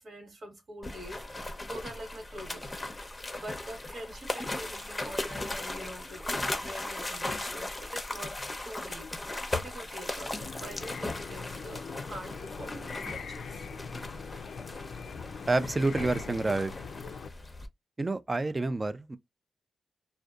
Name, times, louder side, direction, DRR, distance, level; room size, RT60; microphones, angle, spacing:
voice 1, 0.0-8.4 8.6-13.7, equal, 60° right, 1.3 m, -45 dB
sound 1, 0.8-17.7, left 2 dB, 20° left, 0.6 m, -38 dB
sound 2, 10.4-17.3, left 5 dB, 75° left, 0.3 m, -42 dB
voice 2, 15.5-16.7 18.0-19.2, right 2 dB, 30° right, 0.4 m, -28 dB
2.6 x 2.2 x 2.3 m
cardioid pair, 75°, 0 cm